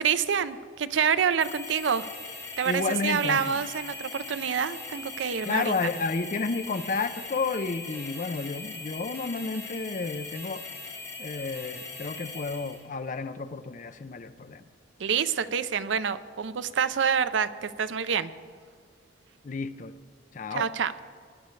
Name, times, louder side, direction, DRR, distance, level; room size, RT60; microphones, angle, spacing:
voice 1, 0.0-2.1 2.6-5.9 15.0-18.3 20.5-20.9, right 7 dB, 80° right, 14 dB, 0.5 m, -27 dB
sound 1, 1.4-12.8, left 3 dB, 15° left, 2.3 m, -40 dB
voice 2, 2.7-3.6 5.5-10.6 11.2-14.6 19.4-19.9 20.3-20.7, left 4 dB, 45° left, 12 dB, 0.5 m, -31 dB
19.5 x 11.0 x 3.2 m, 2.1 s
head